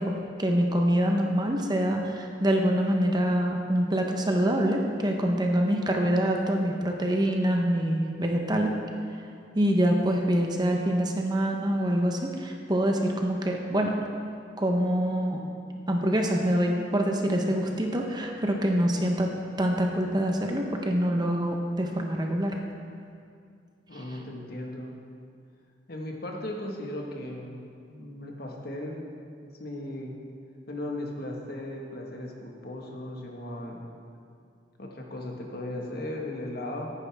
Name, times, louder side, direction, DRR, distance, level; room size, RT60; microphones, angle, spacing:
voice 1, 0.0-8.7 9.5-14.0 14.6-15.4 15.9-19.3 19.6-22.6, equal, 25° right, 2 dB, 0.9 m, -25 dB
voice 2, 23.9-24.9 25.9-27.6 27.9-29.0 29.6-30.1 30.7-33.9 34.8-36.9, left 1 dB, 55° left, 0 dB, 1.5 m, -37 dB
16.5 x 9.5 x 3.5 m, 2.3 s
head